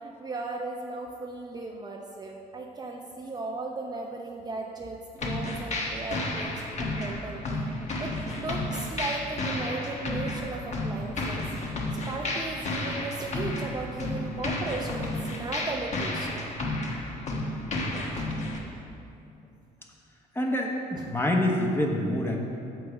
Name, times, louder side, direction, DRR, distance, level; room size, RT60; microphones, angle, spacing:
voice 1, 0.0-7.4 8.0-11.4 12.1-16.4 18.1-18.3 20.9-21.0, right 3 dB, 25° right, 0 dB, 0.6 m, -36 dB
sound 1, 5.2-18.6, left 2 dB, 40° left, 1.3 m, -32 dB
voice 2, 20.3-22.4, left 1 dB, 15° left, 0 dB, 1.1 m, -26 dB
7.7 x 6.6 x 5.0 m, 2.6 s
cardioid pair, 110°, 17 cm